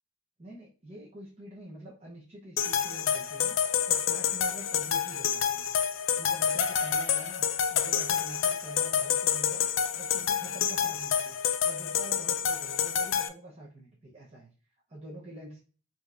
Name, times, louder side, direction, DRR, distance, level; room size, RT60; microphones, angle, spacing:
voice 1, 0.4-5.7 6.0-9.7 9.9-14.5 14.9-15.6, right 1 dB, 35° right, -4 dB, 0.8 m, -46 dB
sound 1, 2.6-13.3, left 8 dB, 65° left, 0.4 m, -28 dB
5.0 x 2.8 x 2.4 m, 0.37 s
head